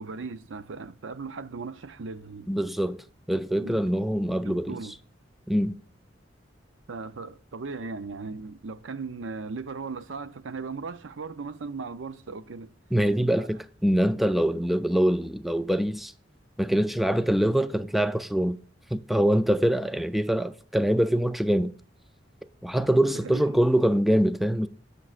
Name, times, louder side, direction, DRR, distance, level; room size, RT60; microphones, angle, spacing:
voice 1, 0.0-2.5 3.6-3.9 4.4-5.0 6.9-12.7 13.4-13.5 23.1-23.6, right 4 dB, 85° right, 0.5 m, -37 dB
voice 2, 2.5-3.0 3.3-4.8 5.5-5.8 12.9-16.1 16.6-18.6 18.9-21.7 22.6-24.7, equal, ahead, 0.3 m, -24 dB
18.5 x 6.7 x 2.5 m
head